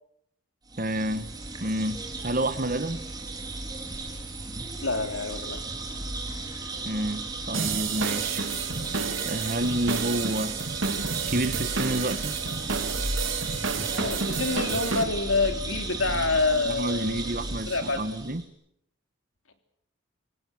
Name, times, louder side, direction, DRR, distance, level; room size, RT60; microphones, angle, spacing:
sound 1, 0.7-18.4, right 2 dB, 20° right, 3.7 m, -35 dB
voice 1, 0.8-1.3 1.6-3.0 6.8-8.4 9.2-10.6 11.3-12.4 16.5-18.4, right 1 dB, 45° right, 1.3 m, -29 dB
voice 2, 4.8-5.6 13.9-18.0, left 3 dB, 80° left, 3.2 m, -27 dB
sound 2, 7.5-15.0, right 5 dB, 75° right, 2.4 m, -30 dB
25.5 x 17.5 x 7.9 m
head